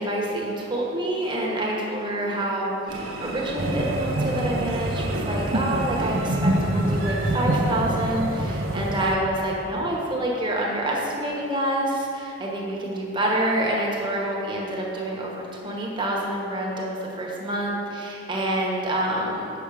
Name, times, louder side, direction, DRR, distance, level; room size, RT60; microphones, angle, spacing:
voice 1, 0.0-19.5, right 1 dB, 25° right, -2 dB, 1.1 m, -27 dB
sound 1, 2.9-9.2, right 2 dB, 80° right, 0.8 m, -35 dB
sound 2, 3.6-9.2, right 1 dB, 45° right, 0.6 m, -26 dB
6.9 x 5.6 x 4.9 m, 2.8 s
head